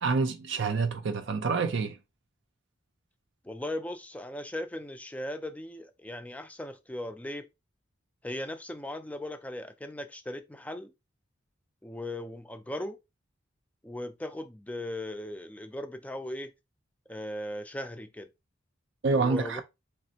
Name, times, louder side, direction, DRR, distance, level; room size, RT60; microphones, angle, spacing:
voice 1, 0.0-2.0 19.0-19.6, right 4 dB, 60° right, 0.4 m, -27 dB
voice 2, 3.4-7.5 8.2-10.9 11.8-13.0 13.8-16.5 17.1-18.3 19.1-19.6, left 1 dB, 5° left, 0.3 m, -38 dB
4.1 x 3.4 x 2.8 m
head